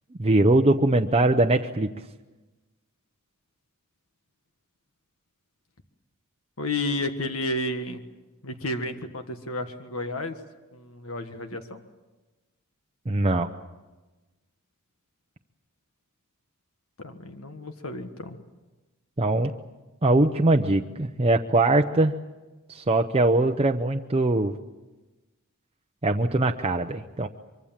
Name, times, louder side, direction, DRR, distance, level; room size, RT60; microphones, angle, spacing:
voice 1, 0.2-1.9 13.1-13.5 19.2-19.5 20.0-22.1 22.7-24.5 26.0-27.3, right 2 dB, 30° right, 3 dB, 0.7 m, -21 dB
voice 2, 6.6-8.0 8.4-10.4 10.7-11.8 17.0-18.4, left 2 dB, 70° left, 7 dB, 1.5 m, -32 dB
24.5 x 24.0 x 7.4 m, 1.2 s
head